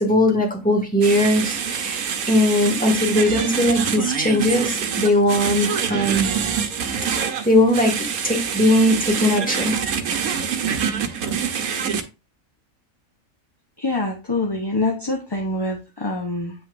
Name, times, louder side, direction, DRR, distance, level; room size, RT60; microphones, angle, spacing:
voice 1, 0.0-2.0 2.3-6.3 7.2-7.9 8.2-9.8, left 1 dB, 5° left, 1 dB, 1.9 m, -19 dB
sound 1, 1.0-12.0, right 7 dB, 85° right, 1.4 m, -25 dB
voice 2, 13.8-16.5, left 2 dB, 20° left, 0 dB, 0.8 m, -25 dB
8.5 x 5.9 x 2.6 m, 0.29 s
omnidirectional pair, 1.5 m